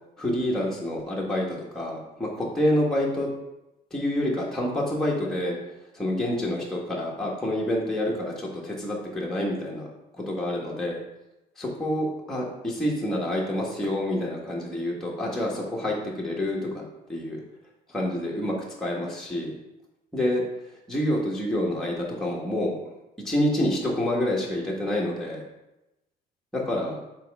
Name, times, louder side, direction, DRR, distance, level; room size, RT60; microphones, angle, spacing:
voice 1, 0.2-3.3 3.9-5.6 5.9-9.9 10.1-11.0 11.6-16.8 17.1-17.4 17.9-19.5 20.1-20.4 20.9-22.8 23.2-25.4 26.5-27.0, left 1 dB, 5° left, -4 dB, 1.4 m, -27 dB
7.4 x 4.1 x 3.6 m, 0.94 s
cardioid pair, 110°, 17 cm